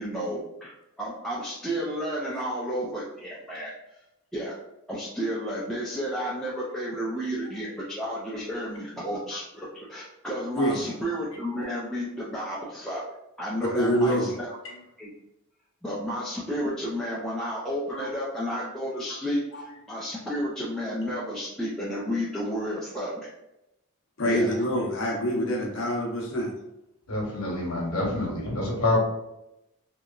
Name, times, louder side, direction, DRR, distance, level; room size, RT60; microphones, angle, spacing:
voice 1, 0.0-3.7 4.3-4.5 4.9-13.0 13.4-14.6 15.0-15.1 15.8-23.3 24.3-24.5, equal, ahead, -8 dB, 0.3 m, -32 dB
voice 2, 10.5-10.9 13.7-14.3 17.9-18.1 19.5-19.6 24.2-26.5, equal, 60° left, -1 dB, 0.7 m, -26 dB
voice 3, 27.1-29.0, left 2 dB, 85° left, -2 dB, 1.0 m, -27 dB
2.9 x 2.2 x 2.3 m, 0.87 s
head